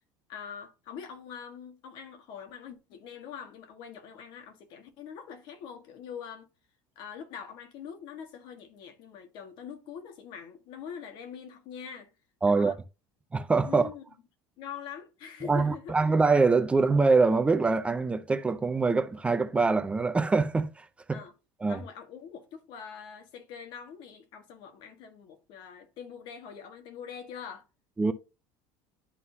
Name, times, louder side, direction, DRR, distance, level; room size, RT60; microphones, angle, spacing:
voice 1, 0.3-6.5 6.9-12.1 12.5-12.8 13.6-14.0 14.6-15.9 21.1-21.3 21.7-27.7, left 7 dB, 60° left, 1.5 m, -43 dB
voice 2, 12.4-12.7 13.3-13.8 15.4-21.2 21.6-21.8 28.0-28.1, right 4 dB, 15° right, 0.5 m, -24 dB
11.0 x 3.9 x 2.7 m
cardioid pair, 130°, 9 cm